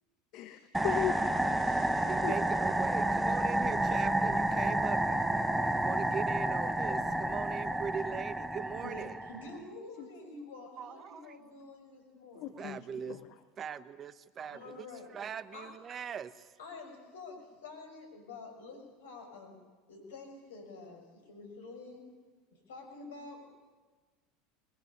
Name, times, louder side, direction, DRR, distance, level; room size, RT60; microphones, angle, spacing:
voice 1, 0.3-2.4 10.0-10.1 12.3-12.8 13.1-13.2, left 13 dB, 55° left, 9 dB, 1.4 m, -38 dB
sound 1, 0.7-9.6, right 1 dB, 5° right, 1.3 m, -30 dB
voice 2, 2.1-9.2 10.8-11.4 12.6-13.2 13.6-14.9 15.1-16.5, right 7 dB, 35° right, 15 dB, 1.1 m, -41 dB
voice 3, 8.8-12.6 14.5-15.1 15.5-15.7 16.6-19.6 19.9-22.0 22.7-23.4, left 3 dB, 75° left, 4 dB, 6.4 m, -48 dB
22.0 x 21.5 x 9.8 m, 1.4 s
hypercardioid pair, 75°, 0 cm